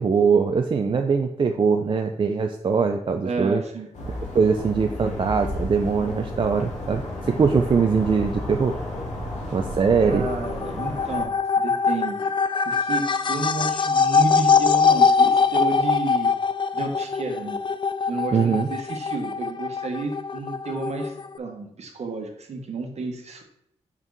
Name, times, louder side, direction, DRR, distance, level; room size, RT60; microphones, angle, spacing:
voice 1, 0.0-3.6 4.3-8.7 9.5-10.3 18.3-18.7, right 5 dB, 45° right, 4 dB, 0.4 m, -22 dB
voice 2, 3.2-3.9 10.0-12.3 12.6-16.3 16.7-17.6 18.1-23.4, right 3 dB, 65° right, 3 dB, 1.2 m, -31 dB
sound 1, 3.9-11.2, left 1 dB, 85° left, 1.8 m, -32 dB
sound 2, 10.1-21.4, left 5 dB, 40° left, 0.4 m, -22 dB
5.4 x 4.9 x 3.9 m, 0.77 s
wide cardioid pair, 95°, 12 cm